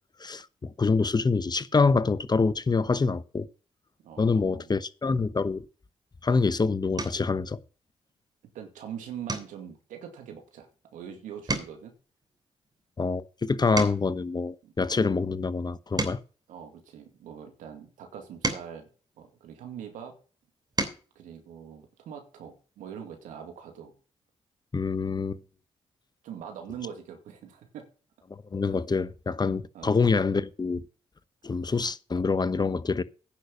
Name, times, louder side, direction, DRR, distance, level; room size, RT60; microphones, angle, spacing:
voice 1, 0.2-3.5 4.2-5.6 6.2-7.6 13.0-16.2 24.7-25.4 28.3-30.8 31.4-33.0, left 4 dB, 30° left, 1.0 m, -26 dB
voice 2, 4.0-4.7 8.5-11.9 14.6-14.7 16.5-18.9 19.2-20.2 21.2-23.9 26.2-27.9 29.7-30.0, right 8 dB, 80° right, 2.2 m, -43 dB
sound 1, 6.1-6.4 6.9-7.4 7.9-8.2 8.5-8.7 9.2-11.1 11.3-14.3 14.9-17.4 18.0-19.9 20.4-21.1 22.5-22.6 22.9-23.1, right 2 dB, 30° right, 3.1 m, -36 dB
10.0 x 6.3 x 6.9 m
hypercardioid pair, 45°, 13 cm